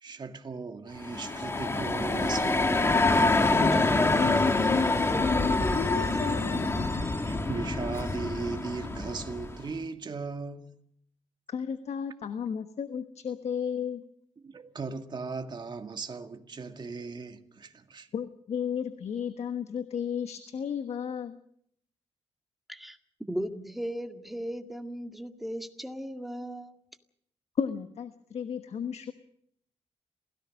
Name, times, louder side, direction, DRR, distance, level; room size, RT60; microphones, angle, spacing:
voice 1, 0.0-3.2 5.5-5.6 7.3-10.7 14.4-18.1, right 4 dB, 40° right, 1.9 m, -37 dB
sound 1, 1.0-9.7, left 2 dB, 20° left, 1.9 m, -26 dB
voice 2, 3.6-6.7 11.5-14.0 18.1-21.4 27.6-29.1, left 7 dB, 70° left, 1.3 m, -33 dB
voice 3, 23.3-26.8, equal, ahead, 2.0 m, -36 dB
27.5 x 17.5 x 6.4 m
wide cardioid pair, 115°, 12 cm